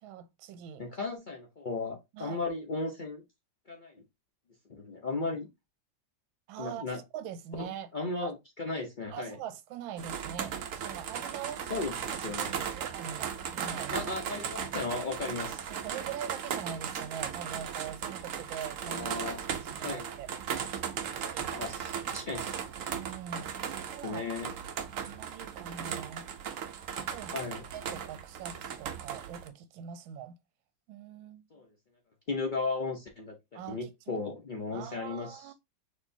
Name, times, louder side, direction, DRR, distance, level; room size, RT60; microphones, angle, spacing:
voice 1, 0.0-0.9 2.1-2.4 6.5-6.9 7.1-7.9 8.2-8.3 9.1-11.9 12.2-14.1 15.7-20.3 21.0-21.7 22.2-22.5 22.9-24.3 24.9-26.3 27.0-27.4 27.7-30.4 30.9-31.7 33.5-34.2 34.7-35.5, right 9 dB, 85° right, 1.4 m, -43 dB
voice 2, 0.8-3.2 3.7-3.9 4.8-5.5 6.6-7.0 7.6-7.7 7.9-9.4 11.7-11.9 12.2-12.5 13.9-15.7 18.9-19.4 19.8-20.1 21.5-22.5 24.0-24.5 27.3-27.6 31.5-31.6 32.3-35.4, left 3 dB, 85° left, 0.4 m, -35 dB
sound 1, 10.0-29.5, right 8 dB, 70° right, 0.8 m, -37 dB
6.5 x 3.0 x 2.6 m
omnidirectional pair, 2.1 m